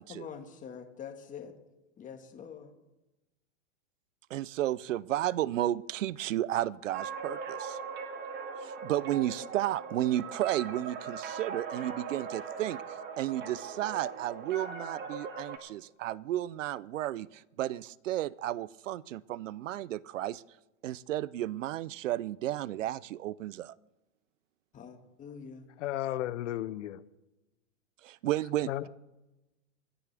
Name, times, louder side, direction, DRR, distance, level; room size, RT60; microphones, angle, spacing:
voice 1, 0.1-1.6 2.0-2.7 24.7-25.7, left 7 dB, 20° left, 1.7 m, -45 dB
voice 2, 4.3-7.8 8.6-20.4 20.8-23.7 28.0-28.7, right 13 dB, 85° right, 0.6 m, -33 dB
sound 1, 6.9-15.6, right 5 dB, 30° right, 2.0 m, -40 dB
voice 3, 25.8-27.0 28.7-28.9, left 13 dB, 75° left, 0.9 m, -34 dB
29.0 x 10.0 x 3.4 m
hypercardioid pair, 135°, 37 cm